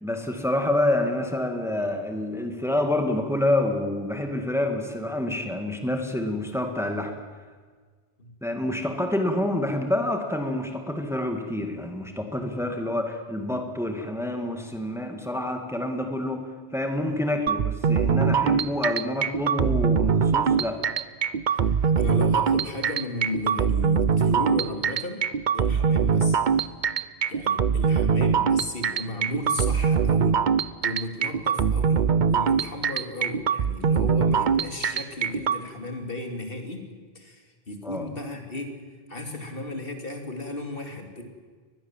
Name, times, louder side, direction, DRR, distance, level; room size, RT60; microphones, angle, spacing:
voice 1, 0.0-7.1 8.4-20.8 37.8-38.1, left 1 dB, 5° right, 5 dB, 2.2 m, -27 dB
sound 1, 17.5-35.6, right 6 dB, 50° right, 0.9 m, -22 dB
voice 2, 21.5-26.4 27.3-30.4 30.8-38.8 39.1-41.2, left 1 dB, 60° left, 4 dB, 3.1 m, -34 dB
23.0 x 20.5 x 7.5 m, 1.5 s
omnidirectional pair, 1.0 m